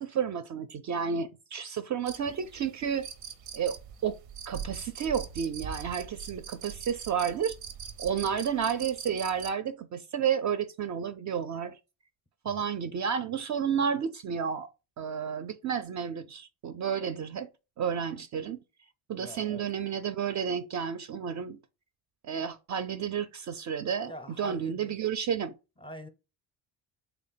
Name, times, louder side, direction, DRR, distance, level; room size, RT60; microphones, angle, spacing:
voice 1, 0.0-3.1 3.5-3.8 4.0-4.2 4.5-7.6 8.0-11.8 12.4-14.7 15.0-17.5 17.8-18.6 19.1-21.6 22.2-25.5, right 7 dB, 40° right, 0.4 m, -31 dB
sound 1, 2.1-9.5, right 7 dB, 90° right, 0.6 m, -42 dB
voice 2, 19.2-19.7 24.1-24.9 25.8-26.1, equal, 10° left, 0.5 m, -44 dB
3.3 x 2.2 x 3.9 m
supercardioid pair, 70°, 45 cm